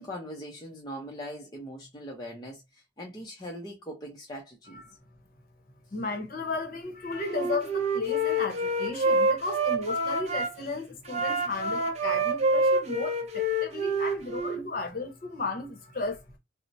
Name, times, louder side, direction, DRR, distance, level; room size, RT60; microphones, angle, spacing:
voice 1, 0.0-4.8, equal, 20° left, 0.5 m, -41 dB
voice 2, 5.9-16.2, left 3 dB, 45° left, 0.8 m, -34 dB
Wind instrument woodwind instrument, 7.2-10.5 11.1-14.6, right 1 dB, 35° right, 0.7 m, -27 dB
4.2 x 2.0 x 2.6 m
head